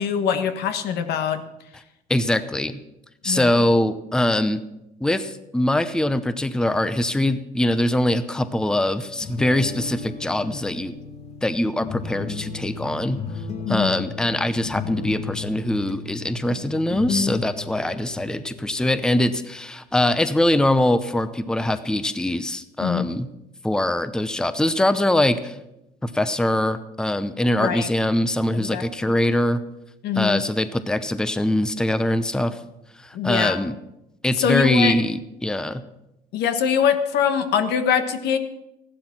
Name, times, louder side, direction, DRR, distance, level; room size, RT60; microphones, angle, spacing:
voice 1, 0.0-1.4 3.2-3.7 13.6-14.0 22.8-23.1 27.6-27.9 28.5-28.8 30.0-30.4 33.1-33.6 34.4-34.9 36.3-38.4, left 7 dB, 75° left, 8 dB, 1.4 m, -23 dB
voice 2, 2.1-2.8 3.2-4.6 5.0-10.9 11.4-13.2 13.7-23.3 23.6-25.5 26.0-29.6 30.2-32.6 33.0-33.7 34.2-35.8, left 1 dB, 5° left, 12 dB, 0.7 m, -22 dB
sound 1, 9.2-19.1, left 5 dB, 40° left, 1.5 m, -34 dB
15.5 x 12.0 x 5.9 m, 0.90 s
cardioid pair, 110°, 17 cm